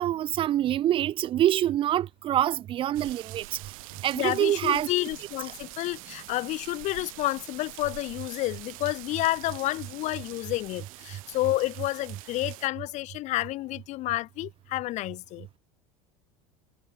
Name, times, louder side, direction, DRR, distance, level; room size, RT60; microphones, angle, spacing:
voice 1, 0.0-3.4 4.0-4.9, right 12 dB, 30° right, 1.4 m, -25 dB
sound 1, 2.9-12.7, right 21 dB, 85° right, 4.5 m, -45 dB
voice 2, 4.2-15.5, left 18 dB, 45° left, 4.9 m, -30 dB
cardioid pair, 165°, 17 cm